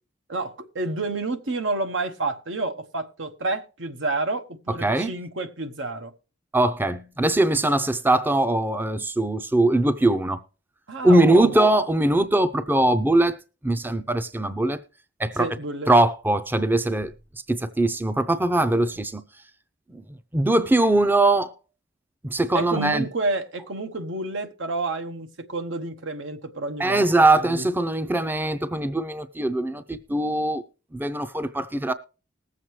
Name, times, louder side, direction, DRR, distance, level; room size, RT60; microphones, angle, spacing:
voice 1, 0.3-6.1 10.9-11.6 15.4-15.9 18.7-18.9 22.5-27.7, right 3 dB, 85° right, 1.1 m, -29 dB
voice 2, 4.7-5.1 6.5-10.4 11.0-13.4 13.6-14.8 15.2-15.5 15.9-17.1 17.5-19.2 19.9-20.0 20.3-21.5 22.2-23.1 26.8-30.6 30.9-31.9, right 2 dB, 10° right, 0.5 m, -21 dB
20.0 x 7.5 x 3.1 m
head